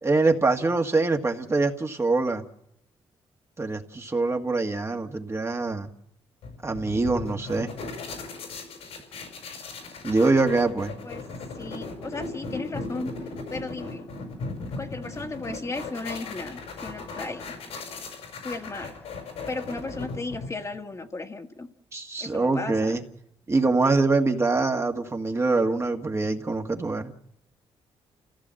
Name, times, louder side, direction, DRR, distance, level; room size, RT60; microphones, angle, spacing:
voice 1, 0.0-2.5 3.6-5.9 6.6-7.7 10.0-10.9 21.9-23.0 23.5-27.1, right 3 dB, 25° right, 4 dB, 1.8 m, -24 dB
sound 1, 6.4-20.8, left 3 dB, 85° left, 5.6 m, -37 dB
voice 2, 11.5-13.1 13.5-14.1 14.8-17.6 18.4-19.0 19.5-21.7 22.2-23.0, left 3 dB, 30° left, 4 dB, 1.8 m, -35 dB
29.0 x 15.5 x 7.7 m, 0.83 s
cardioid pair, 80°, 10 cm